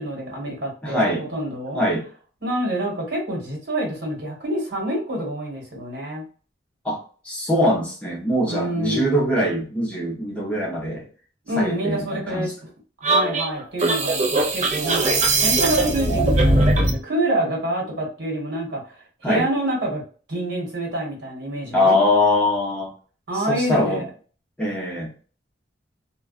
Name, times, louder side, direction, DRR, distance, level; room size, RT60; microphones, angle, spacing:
voice 1, 0.0-1.8 2.4-6.3 8.5-9.3 11.4-12.5 13.0-20.0 20.3-22.0 23.3-24.0, right 1 dB, 65° right, -1 dB, 1.3 m, -27 dB
voice 2, 0.8-1.2 1.7-2.1 6.8-7.0 7.2-11.0 11.6-12.5 19.2-19.5 21.7-22.9 23.3-24.0 24.6-25.1, left 1 dB, 5° left, -4 dB, 0.7 m, -22 dB
sound 1, 13.0-17.0, right 2 dB, 40° right, 0.5 m, -20 dB
2.3 x 2.2 x 2.4 m, 0.40 s
head